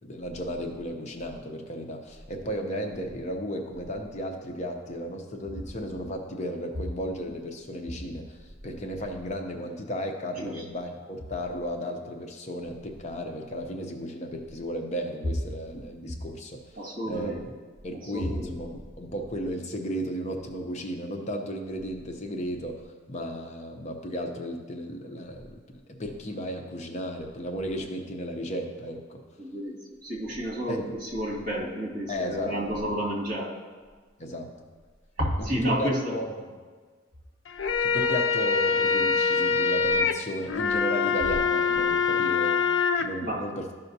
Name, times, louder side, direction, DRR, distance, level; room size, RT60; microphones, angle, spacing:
voice 1, 0.0-16.8 17.1-17.5 17.8-29.2 30.7-30.9 32.1-32.9 34.2-34.5 35.4-36.3 37.8-42.7 43.0-43.6, equal, 35° left, 3 dB, 0.6 m, -34 dB
voice 2, 16.8-17.4 17.9-18.6 29.4-29.8 30.0-33.6 35.2-36.2 43.2-43.5, equal, 45° right, -3 dB, 2.1 m, -31 dB
sound 1, 37.5-43.0, left 5 dB, 80° left, 0.5 m, -24 dB
12.5 x 5.6 x 2.7 m, 1.5 s
head